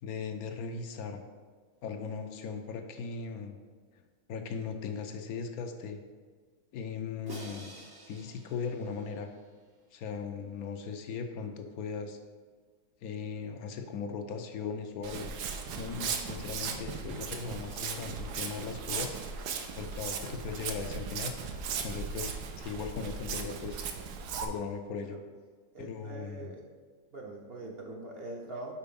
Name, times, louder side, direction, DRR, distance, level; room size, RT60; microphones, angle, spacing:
voice 1, 0.0-1.2 1.8-3.6 4.3-6.0 6.7-7.7 8.1-9.3 9.9-12.2 13.0-15.3 15.8-19.2 19.8-21.3 21.8-23.8 24.4-25.2 25.8-26.5, left 5 dB, 75° left, 6 dB, 1.0 m, -38 dB
Crash cymbal, 7.3-9.5, right 2 dB, 25° right, 0.4 m, -48 dB
Walk footsteps, 15.0-24.4, right 6 dB, 90° right, 1.2 m, -37 dB
voice 2, 25.7-26.6 27.1-28.7, right 2 dB, 50° right, -1 dB, 0.8 m, -42 dB
5.6 x 4.3 x 5.2 m, 1.5 s
omnidirectional pair, 1.6 m